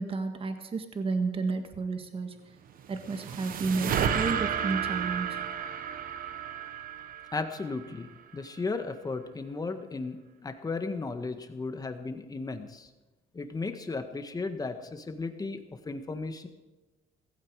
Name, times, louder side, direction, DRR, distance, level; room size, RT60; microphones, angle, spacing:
voice 1, 0.0-2.3 2.9-5.3, right 4 dB, 35° right, 7 dB, 1.8 m, -31 dB
sound 1, 2.7-8.1, right 8 dB, 55° right, 1.3 m, -32 dB
voice 2, 7.3-8.1 8.3-12.9 13.3-15.6 15.8-16.5, left 3 dB, 20° left, 7 dB, 1.6 m, -35 dB
16.5 x 15.5 x 4.9 m, 1.1 s
cardioid pair, 110°, 17 cm